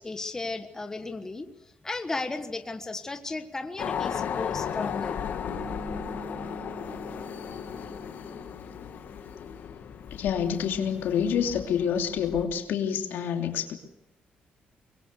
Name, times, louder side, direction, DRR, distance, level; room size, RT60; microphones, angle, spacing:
voice 1, 0.0-1.5 1.8-5.2, left 3 dB, 15° left, 7 dB, 1.4 m, -35 dB
sound 1, 3.8-12.4, left 8 dB, 60° left, 2.0 m, -35 dB
Bass guitar, 5.5-9.6, right 4 dB, 85° right, 7.4 m, -45 dB
voice 2, 10.1-13.7, left 8 dB, 85° left, 4 dB, 3.0 m, -27 dB
24.5 x 22.0 x 6.7 m, 0.90 s
cardioid pair, 145°, 3 cm